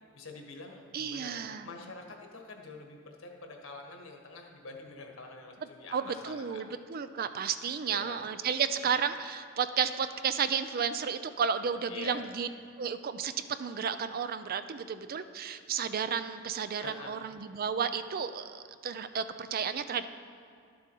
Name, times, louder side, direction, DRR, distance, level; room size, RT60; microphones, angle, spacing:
voice 1, 0.1-6.6 7.8-8.3 11.9-12.2 16.8-17.2, left 3 dB, 75° left, 2 dB, 1.4 m, -46 dB
voice 2, 0.9-1.7 5.9-12.5 12.8-13.3 13.6-20.1, right 7 dB, 45° right, 11 dB, 0.4 m, -32 dB
12.0 x 7.1 x 4.6 m, 2.4 s
head